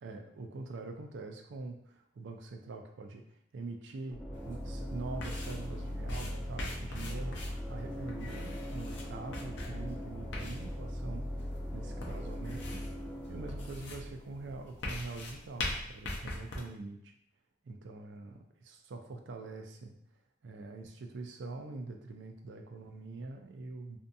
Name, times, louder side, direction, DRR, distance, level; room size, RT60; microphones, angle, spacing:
voice 1, 0.0-7.4 7.7-12.9 13.3-17.1 17.6-20.0 20.4-24.0, right 3 dB, 80° right, 4 dB, 0.4 m, -44 dB
sound 1, 4.1-14.9, equal, 5° left, 0.4 m, -40 dB
sound 2, 4.4-16.6, left 2 dB, 70° left, 0.5 m, -43 dB
2.6 x 2.2 x 2.6 m, 0.70 s
head